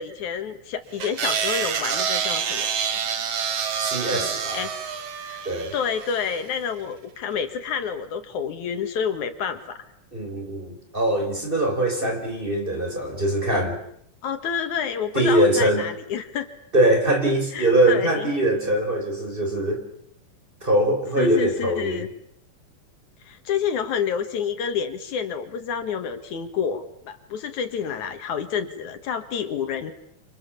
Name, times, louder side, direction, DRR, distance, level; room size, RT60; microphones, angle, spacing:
voice 1, 0.0-2.9 4.1-4.9 5.2-5.4 5.7-9.8 12.0-12.1 14.2-16.5 17.5-18.3 21.2-22.1 23.2-29.9, left 7 dB, 75° left, 8 dB, 3.0 m, -29 dB
sound 1, 1.0-6.4, right 7 dB, 60° right, 2.5 m, -27 dB
voice 2, 3.9-4.6 5.4-5.7 10.1-13.8 15.1-15.8 16.7-19.8 20.6-22.1, right 1 dB, 15° right, 3 dB, 4.5 m, -22 dB
27.5 x 27.0 x 7.2 m, 0.71 s
omnidirectional pair, 3.5 m